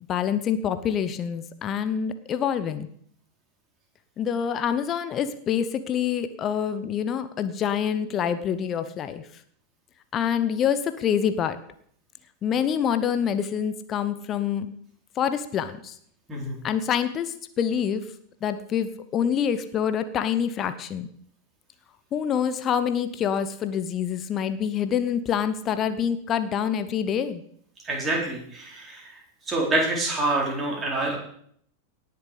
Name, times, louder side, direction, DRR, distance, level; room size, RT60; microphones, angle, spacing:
voice 1, 0.1-2.9 4.2-9.2 10.1-11.6 12.4-14.7 15.2-15.9 16.6-18.1 18.4-21.1 22.1-27.4, left 8 dB, 30° left, 11 dB, 0.8 m, -26 dB
voice 2, 27.8-29.1 29.5-31.2, right 2 dB, 15° right, -2 dB, 4.6 m, -26 dB
18.5 x 6.9 x 5.1 m, 0.63 s
figure-of-eight pair, 90°, 0 cm